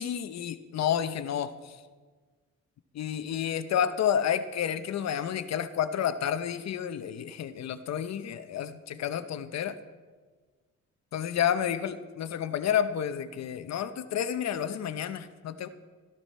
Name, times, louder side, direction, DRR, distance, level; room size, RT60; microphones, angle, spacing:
voice 1, 0.0-1.8 2.9-9.8 11.1-15.7, left 9 dB, 60° left, 11 dB, 0.8 m, -30 dB
13.0 x 12.5 x 4.3 m, 1.4 s
cardioid pair, 90°, 30 cm